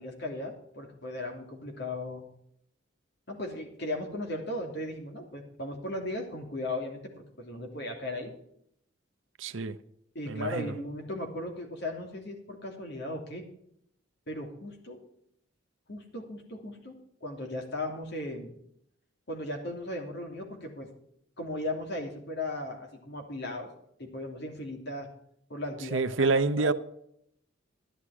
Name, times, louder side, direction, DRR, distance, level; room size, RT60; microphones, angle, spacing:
voice 1, 0.0-2.2 3.3-7.0 7.4-8.3 10.1-13.4 14.3-15.0 15.9-17.0 17.2-18.5 19.3-20.9 21.4-23.7 24.0-25.1 25.5-26.7, left 1 dB, 60° left, 2.9 m, -37 dB
voice 2, 9.4-9.8 10.3-10.7 25.9-26.7, right 3 dB, 75° right, 0.8 m, -27 dB
11.5 x 11.5 x 4.8 m
head